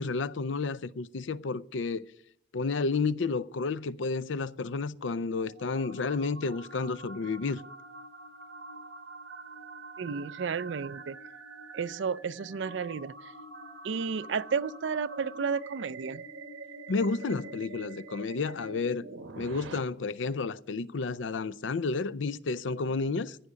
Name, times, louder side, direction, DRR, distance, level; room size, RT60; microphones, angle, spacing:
voice 1, 0.0-2.1 2.5-7.6 16.9-19.1 19.4-23.4, left 4 dB, 80° left, 0.5 m, -31 dB
sound 1, 4.7-19.8, right 3 dB, 90° right, 1.2 m, -46 dB
voice 2, 10.0-11.2 11.7-13.1 13.8-16.2, right 6 dB, 70° right, 0.4 m, -32 dB
15.0 x 5.0 x 9.5 m
head